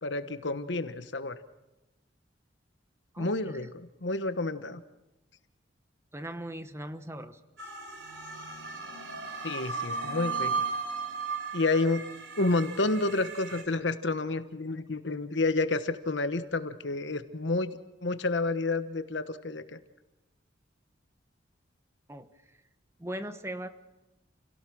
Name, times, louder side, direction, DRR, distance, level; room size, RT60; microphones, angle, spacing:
voice 1, 0.0-1.4 3.2-4.8 9.4-10.7 11.5-12.0 12.4-19.6, left 2 dB, 75° left, 11 dB, 1.2 m, -30 dB
voice 2, 3.1-3.7 6.1-7.4 22.1-22.3 23.0-23.7, right 1 dB, 15° right, 10 dB, 1.0 m, -39 dB
sound 1, 7.6-13.6, right 4 dB, 85° right, 4.1 m, -36 dB
29.0 x 17.0 x 6.3 m, 1.0 s
head